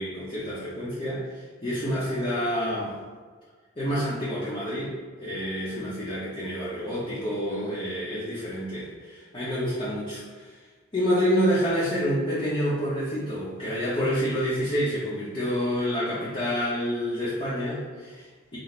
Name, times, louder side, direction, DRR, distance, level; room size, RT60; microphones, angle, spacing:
voice 1, 0.0-3.0 3.8-10.5 10.9-18.6, equal, 25° left, -9 dB, 0.7 m, -28 dB
4.0 x 2.0 x 4.3 m, 1.5 s
head